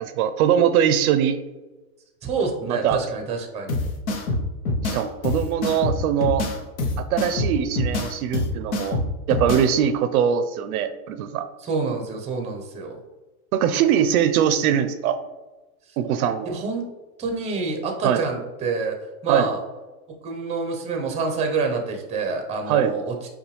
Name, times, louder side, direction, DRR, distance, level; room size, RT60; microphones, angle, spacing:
voice 1, 0.0-1.4 2.7-3.0 4.8-6.4 7.0-9.0 9.3-11.5 13.5-15.2 16.0-16.6 18.0-18.2 19.3-19.5 22.7-22.9, right 9 dB, 70° right, 10 dB, 0.5 m, -22 dB
voice 2, 2.2-3.7 11.6-13.0 16.4-16.8 17.2-18.9 19.2-19.6 20.2-23.3, right 4 dB, 15° right, 3 dB, 0.6 m, -27 dB
sound 1, 3.7-9.7, left 2 dB, 75° left, 0.9 m, -26 dB
5.4 x 2.3 x 3.2 m, 1.2 s
supercardioid pair, 130°, 44 cm